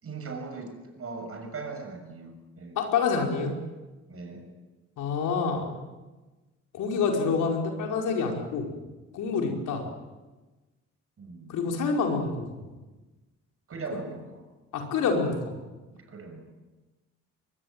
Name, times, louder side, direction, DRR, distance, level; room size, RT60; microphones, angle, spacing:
voice 1, 0.0-2.8 4.1-4.5 11.2-11.6 13.7-14.4 15.9-16.5, right 4 dB, 50° right, 5 dB, 6.6 m, -39 dB
voice 2, 2.8-3.5 5.0-5.8 6.7-8.7 9.1-9.8 11.5-12.6 14.7-15.5, left 5 dB, 85° left, 2 dB, 5.2 m, -27 dB
23.0 x 21.0 x 9.1 m, 1.2 s
cardioid pair, 90°, 30 cm